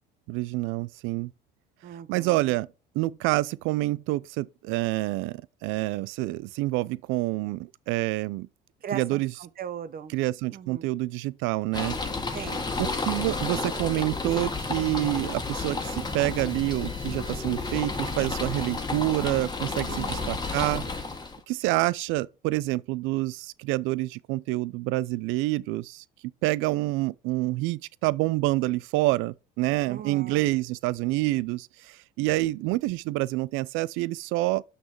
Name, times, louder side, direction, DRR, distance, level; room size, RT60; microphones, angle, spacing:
voice 1, 0.3-1.3 2.1-2.7 2.9-8.5 8.9-9.3 10.1-12.0 12.8-20.9 21.5-26.0 26.4-34.6, right 19 dB, 75° right, 0.5 m, -27 dB
voice 2, 1.8-2.5 8.8-10.1 10.5-10.9 12.3-12.7 19.9-20.4 29.9-30.4, right 8 dB, 50° right, 1.0 m, -39 dB
sound 1, 11.7-21.4, left 3 dB, 20° left, 1.6 m, -31 dB
6.1 x 5.7 x 5.9 m
supercardioid pair, 75°, 20 cm